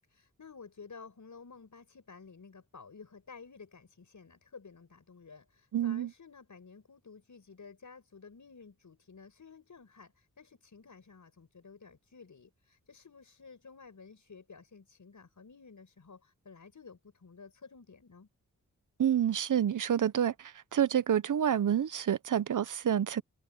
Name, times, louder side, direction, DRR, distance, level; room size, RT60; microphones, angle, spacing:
voice 1, 0.1-18.3, left 5 dB, 60° left, 6.0 m, -53 dB
voice 2, 5.7-6.1 19.0-23.2, right 9 dB, 65° right, 0.8 m, -28 dB
cardioid pair, 45°, 33 cm